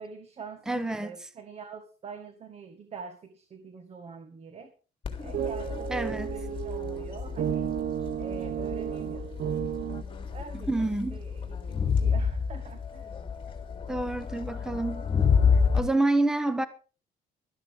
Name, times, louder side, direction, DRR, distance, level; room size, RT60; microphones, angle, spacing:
voice 1, 0.0-4.7 5.2-5.9 6.3-7.7 8.2-9.7 10.3-13.1 14.7-14.9, right 5 dB, 40° right, 1.8 m, -45 dB
voice 2, 0.7-1.3 5.9-6.3 10.7-11.2 13.9-15.1 15.7-16.7, right 2 dB, 5° right, 1.0 m, -28 dB
Crowd, 5.0-15.8, left 6 dB, 30° left, 3.4 m, -29 dB
sound 1, 5.3-10.0, right 10 dB, 65° right, 0.9 m, -33 dB
16.0 x 13.0 x 3.7 m
cardioid pair, 110°, 17 cm